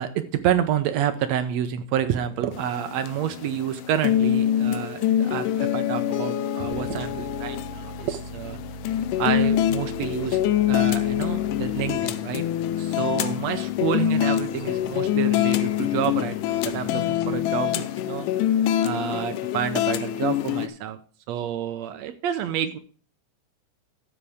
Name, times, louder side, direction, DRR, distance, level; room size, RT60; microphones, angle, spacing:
voice 1, 0.0-8.6 9.2-10.4 10.7-12.4 12.8-18.3 18.8-21.0 21.3-22.8, right 10 dB, 75° right, 10 dB, 1.6 m, -28 dB
sound 1, 2.5-20.7, left 11 dB, 85° left, 2.2 m, -25 dB
sound 2, 6.6-17.3, left 1 dB, 35° left, 2.2 m, -42 dB
12.5 x 8.0 x 3.5 m, 0.43 s
omnidirectional pair, 3.7 m